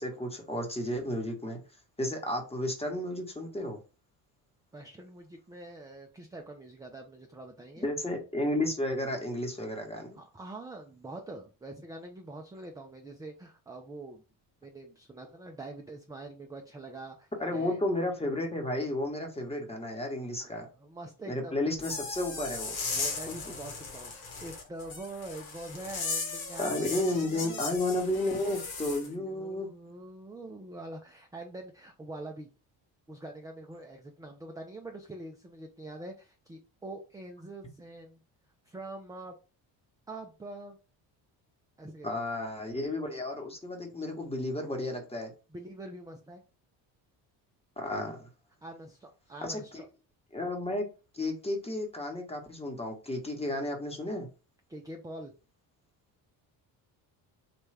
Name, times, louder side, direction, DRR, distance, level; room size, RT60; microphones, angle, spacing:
voice 1, 0.0-1.6 2.0-3.8 7.8-10.2 17.4-20.7 21.3-22.8 23.3-23.4 26.6-29.7 42.0-45.3 47.8-48.3 49.4-49.8 50.3-50.9 51.1-54.3, left 1 dB, 10° left, 3 dB, 1.0 m, -32 dB
voice 2, 4.7-7.9 10.1-14.2 14.6-17.8 20.4-21.6 22.9-27.6 29.0-32.5 33.1-38.2 38.6-39.3 40.1-40.8 41.8-42.1 45.5-46.4 48.6-49.9 54.7-55.3, right 2 dB, 10° right, 2 dB, 0.3 m, -44 dB
sound 1, 21.8-29.1, left 4 dB, 85° left, 1.3 m, -37 dB
3.1 x 2.2 x 3.3 m, 0.33 s
supercardioid pair, 65°, 49 cm